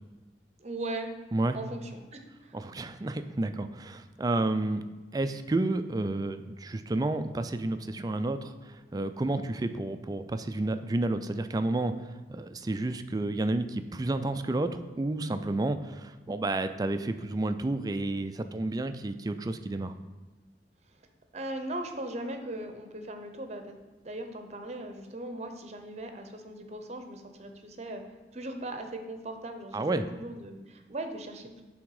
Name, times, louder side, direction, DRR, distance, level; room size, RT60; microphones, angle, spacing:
voice 1, 0.6-1.1 1.5-2.6 21.3-23.8 24.0-28.0 28.3-31.6, right 1 dB, 35° right, 6 dB, 0.7 m, -39 dB
voice 2, 2.5-4.8 5.1-19.9 29.7-30.1, right 2 dB, 20° right, 9 dB, 0.3 m, -31 dB
9.7 x 3.6 x 4.8 m, 1.3 s
head